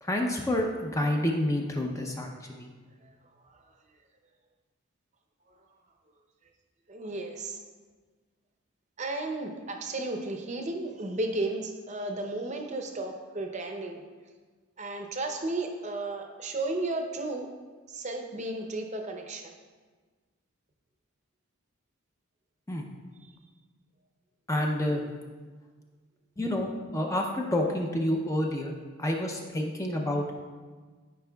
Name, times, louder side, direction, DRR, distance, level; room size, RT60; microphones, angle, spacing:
voice 1, 0.0-2.7 22.7-22.8 24.5-25.0 26.4-28.7 29.0-30.3, left 1 dB, 15° left, 1 dB, 0.5 m, -29 dB
voice 2, 3.4-3.8 6.9-7.6 9.0-14.0 14.8-17.5 17.9-19.6, right 2 dB, 35° right, 4 dB, 0.6 m, -34 dB
12.5 x 5.2 x 2.3 m, 1.4 s
head